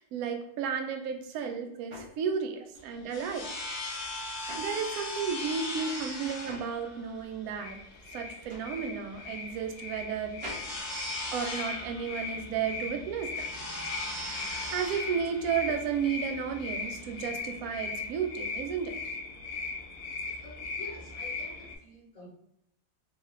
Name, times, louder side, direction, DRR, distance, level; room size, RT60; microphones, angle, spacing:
voice 1, 0.0-3.5 4.6-7.8 8.1-10.5 11.3-13.5 14.7-19.0, right 6 dB, 70° right, 4 dB, 1.0 m, -33 dB
sound 1, 1.2-5.4 5.7-11.9, equal, 50° right, 0.3 m, -49 dB
sound 2, 2.8-17.3, left 1 dB, 90° left, 0.4 m, -39 dB
sound 3, 7.6-21.8, left 4 dB, 75° left, 1.1 m, -39 dB
voice 2, 20.4-22.3, left 2 dB, 35° left, -3 dB, 0.7 m, -49 dB
3.5 x 2.3 x 3.1 m, 0.80 s
omnidirectional pair, 1.7 m